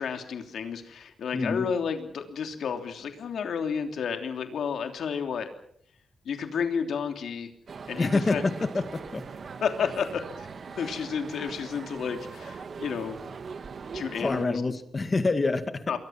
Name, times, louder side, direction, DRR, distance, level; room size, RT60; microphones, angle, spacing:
voice 1, 0.0-5.5 6.2-7.5 7.9-8.4 9.6-10.5 10.8-13.2 13.9-14.6 15.9-16.0, left 6 dB, 80° left, 5 dB, 3.1 m, -31 dB
voice 2, 1.3-1.7 8.0-8.8 9.1-9.2 14.0-15.8, left 3 dB, 30° left, 9 dB, 2.2 m, -26 dB
sound 1, 7.7-14.5, right 5 dB, 45° right, 1.7 m, -41 dB
28.5 x 22.5 x 6.0 m, 0.65 s
wide cardioid pair, 155°, 0 cm